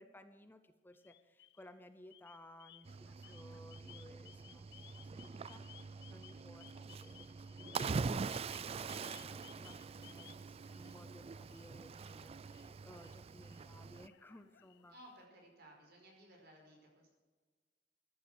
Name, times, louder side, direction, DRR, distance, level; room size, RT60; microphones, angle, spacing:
voice 1, 0.0-4.7 5.0-14.9, left 1 dB, 10° left, 9 dB, 0.7 m, -59 dB
sound 1, 0.9-1.7 2.1-11.1 11.4-15.1, left 14 dB, 65° left, 0.5 m, -61 dB
Cricket / Waves surf, 2.8-14.1, right 4 dB, 35° right, 0.3 m, -44 dB
voice 2, 14.9-17.1, equal, 60° right, 1 dB, 4.9 m, -59 dB
14.5 x 11.5 x 6.3 m, 1.3 s
head